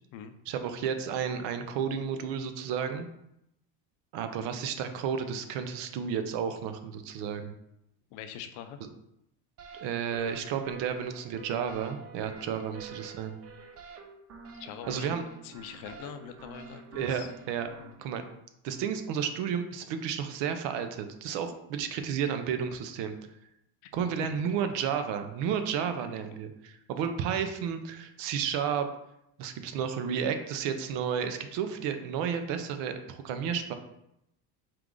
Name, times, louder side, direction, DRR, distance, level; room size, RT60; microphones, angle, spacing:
voice 1, 0.5-3.1 4.1-7.5 9.7-13.4 14.9-15.3 16.9-17.7 18.0-18.2 18.6-23.2 23.9-28.9 29.4-33.7, right 7 dB, 70° right, 8 dB, 0.7 m, -32 dB
voice 2, 8.1-8.8 14.5-15.1 15.4-17.3 17.8-18.0 23.8-24.0, left 9 dB, 75° left, 9 dB, 0.6 m, -43 dB
sound 1, 9.6-17.9, right 5 dB, 35° right, 0.5 m, -48 dB
4.6 x 2.5 x 3.7 m, 0.82 s
cardioid pair, 115°, 45 cm